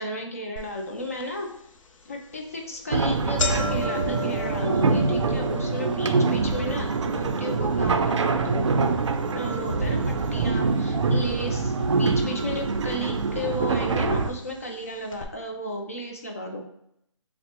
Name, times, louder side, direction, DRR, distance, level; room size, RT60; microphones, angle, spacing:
voice 1, 0.0-1.5 2.1-8.9 9.3-16.6, equal, 30° left, 2 dB, 0.4 m, -33 dB
sound 1, 0.6-0.7 1.2-1.3 2.1-2.3 2.6-2.8 3.0-11.2 11.5-12.2 13.0-13.1 14.1-14.2 14.4-14.5 15.1-15.2, left 3 dB, 80° left, 0.5 m, -36 dB
sound 2, 2.9-14.3, right 4 dB, 65° right, 0.4 m, -24 dB
2.9 x 2.0 x 4.1 m, 0.75 s
hypercardioid pair, 175°, 16 cm